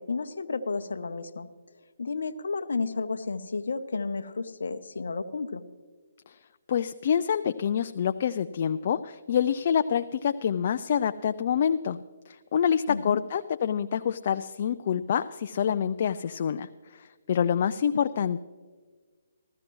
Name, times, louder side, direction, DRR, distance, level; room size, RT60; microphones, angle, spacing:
voice 1, 0.0-1.5 2.0-5.6 12.9-13.2 18.2-18.3, left 4 dB, 75° left, 10 dB, 0.7 m, -32 dB
voice 2, 6.7-12.0 12.3-18.4, left 8 dB, 50° left, 10 dB, 0.3 m, -27 dB
14.5 x 14.0 x 3.1 m, 1.5 s
hypercardioid pair, 150°, 0 cm